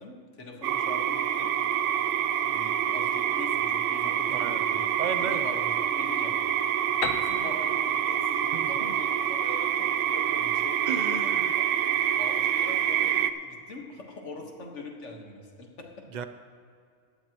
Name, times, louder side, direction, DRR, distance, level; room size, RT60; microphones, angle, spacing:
voice 1, 0.0-1.5 2.5-4.9 5.2-6.4 7.1-11.4 12.2-16.0, left 2 dB, 65° left, 1 dB, 1.8 m, -42 dB
sound 1, 0.6-13.3, right 10 dB, 75° right, 0.9 m, -27 dB
voice 2, 4.3-4.6 5.0-5.5 8.5-8.9 10.9-11.5 16.1-16.2, right 6 dB, 50° right, 10 dB, 0.6 m, -34 dB
Piano, 7.0-10.7, left 7 dB, 80° left, 1.1 m, -39 dB
16.5 x 12.0 x 3.0 m, 2.3 s
omnidirectional pair, 1.3 m